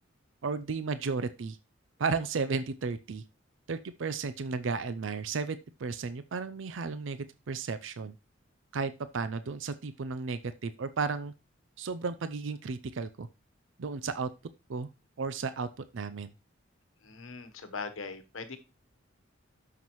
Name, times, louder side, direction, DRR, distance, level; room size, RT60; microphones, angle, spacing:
voice 1, 0.4-1.6 2.0-3.2 3.7-8.1 8.7-11.3 11.8-13.3 13.8-14.3 14.7-14.9 15.2-15.7 15.9-16.3, right 4 dB, 70° right, 12 dB, 0.5 m, -34 dB
voice 2, 17.0-18.6, left 4 dB, 85° left, 9 dB, 1.1 m, -40 dB
12.5 x 5.9 x 3.1 m, 0.29 s
head